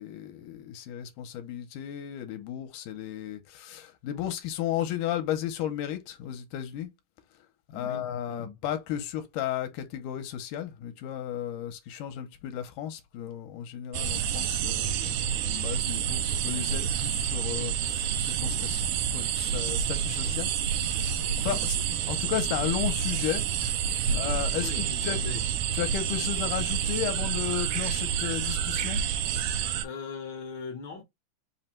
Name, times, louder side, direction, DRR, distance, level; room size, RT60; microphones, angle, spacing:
voice 1, 0.0-6.9 7.7-23.5 24.1-25.2 25.7-29.0, left 11 dB, 80° left, 2.3 m, -34 dB
voice 2, 7.7-8.6 14.3-14.4 21.4-21.7 23.6-25.4 29.8-31.0, left 5 dB, 65° left, 1.1 m, -41 dB
sound 1, 13.9-29.8, right 8 dB, 85° right, 1.5 m, -29 dB
5.6 x 2.2 x 4.3 m
omnidirectional pair, 3.8 m